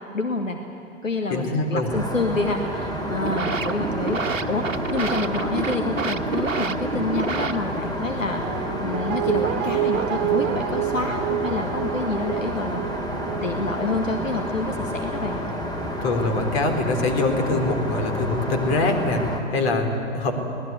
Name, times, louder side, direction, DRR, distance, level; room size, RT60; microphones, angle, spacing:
voice 1, 0.1-0.6 1.0-8.4 8.8-13.1 13.4-15.4, left 3 dB, 85° left, 4 dB, 1.7 m, -28 dB
voice 2, 1.3-1.9 14.9-15.0 16.0-20.4, left 2 dB, 50° left, 5 dB, 3.9 m, -24 dB
Aircraft, 1.9-19.4, equal, 10° left, 2.8 m, -30 dB
sound 1, 3.0-8.0, right 4 dB, 80° right, 1.2 m, -29 dB
Guitar, 8.4-15.4 15.8-15.9, right 13 dB, 25° right, 0.7 m, -29 dB
25.0 x 19.0 x 9.7 m, 2.9 s
figure-of-eight pair, 100°, 38 cm